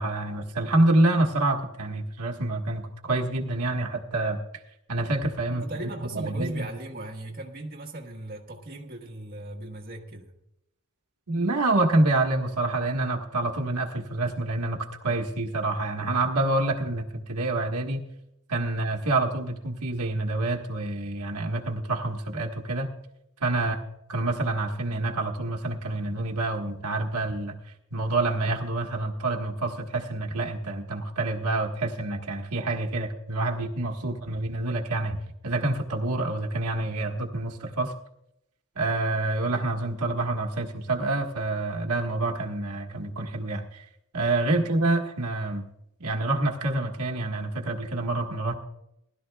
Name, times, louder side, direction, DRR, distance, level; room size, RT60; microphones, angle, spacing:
voice 1, 0.0-4.4 4.9-5.6 6.1-6.6 11.3-18.0 18.5-22.9 23.4-23.8 24.1-27.6 27.9-35.2 35.4-37.9 38.7-43.8 44.1-45.6 46.0-48.5, right 2 dB, 90° right, 1 dB, 1.5 m, -27 dB
voice 2, 5.5-10.3 23.5-23.8 44.5-44.7, right 1 dB, 45° right, 1 dB, 1.4 m, -38 dB
19.5 x 12.0 x 2.3 m, 0.81 s
head